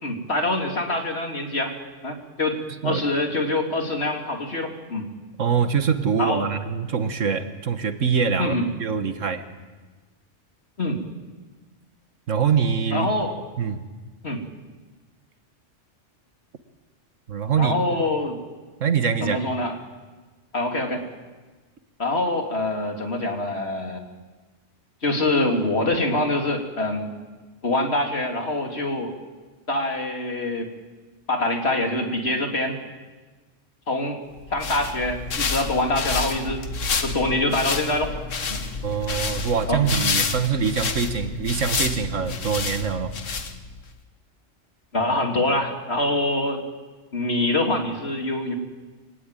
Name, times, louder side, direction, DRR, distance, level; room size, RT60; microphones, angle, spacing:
voice 1, 0.0-1.7 2.0-5.1 6.2-6.5 8.4-8.7 10.8-11.0 12.9-13.3 14.2-14.4 17.6-18.4 19.2-19.8 20.5-21.0 22.0-24.1 25.0-27.1 27.6-29.1 29.7-30.7 31.3-32.8 33.9-34.2 34.5-36.6 37.0-38.1 38.5-38.6 39.7-39.8 44.9-46.6 47.1-48.5, left 2 dB, 55° left, 3 dB, 3.0 m, -25 dB
voice 2, 5.4-8.5 8.8-9.4 12.3-13.1 13.6-13.9 17.3-17.8 18.8-19.4 38.8-43.1, right 6 dB, 80° right, 9 dB, 1.8 m, -24 dB
sound 1, 34.4-43.9, left 4 dB, 80° left, 1.8 m, -29 dB
24.5 x 18.0 x 9.0 m, 1.3 s
omnidirectional pair, 1.3 m